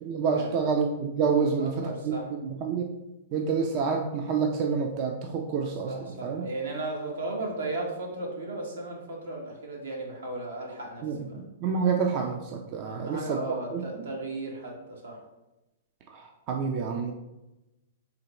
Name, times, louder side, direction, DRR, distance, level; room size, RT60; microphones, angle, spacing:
voice 1, 0.0-2.2 2.4-2.9 3.3-6.5 11.0-13.4 13.7-14.0 16.1-17.1, right 5 dB, 40° right, 3 dB, 0.4 m, -28 dB
voice 2, 1.4-2.3 5.9-11.4 12.8-15.2, right 2 dB, 80° right, -1 dB, 1.4 m, -35 dB
3.9 x 3.0 x 4.3 m, 0.98 s
hypercardioid pair, 140°, 0 cm